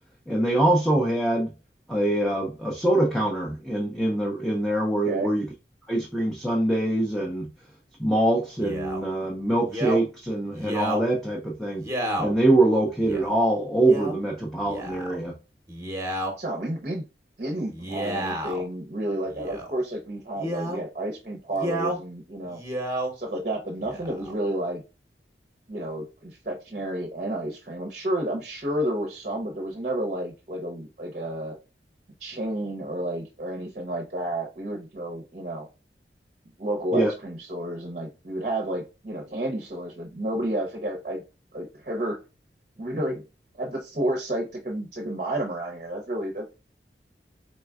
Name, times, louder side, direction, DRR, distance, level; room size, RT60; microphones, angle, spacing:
voice 1, 0.3-1.5 1.9-5.4 5.9-7.5 8.0-11.8 12.2-15.3 36.9-37.1, right 1 dB, ahead, 0.6 m, -24 dB
Male speech man speaking, 8.6-9.0 9.7-10.0 10.5-11.0 11.8-12.3 13.0-13.3 13.8-14.2 14.6-15.2 15.7-16.3 17.7-18.6 19.3-19.7 20.4-20.8 21.5-22.0 22.4-23.1 23.8-24.3, right 1 dB, 15° right, 0.9 m, -31 dB
voice 2, 16.4-17.0 17.4-22.6 23.1-24.8 25.7-31.6 32.2-35.7 36.6-41.2 41.5-42.2 42.8-43.2 43.6-46.5, right 1 dB, 40° right, 0.7 m, -31 dB
4.1 x 3.7 x 2.3 m
head